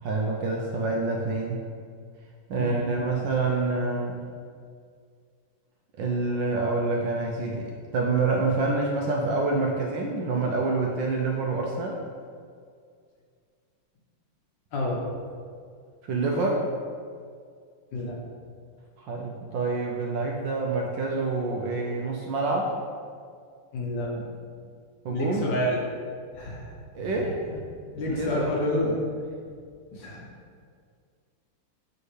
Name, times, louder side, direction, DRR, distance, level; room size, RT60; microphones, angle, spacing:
voice 1, 0.0-1.6 2.5-4.2 6.0-7.7 7.9-12.0 16.0-16.6 19.0-22.7 25.0-25.5 26.9-27.6 28.1-28.6, right 3 dB, 75° right, -1 dB, 1.1 m, -27 dB
voice 2, 14.7-15.0 17.9-18.2 23.7-24.1 25.1-25.8 26.3-26.7 27.4-27.5 27.9-29.0 29.9-30.2, left 1 dB, 65° left, -2 dB, 1.5 m, -28 dB
7.3 x 4.6 x 3.2 m, 2.2 s
omnidirectional pair, 2.4 m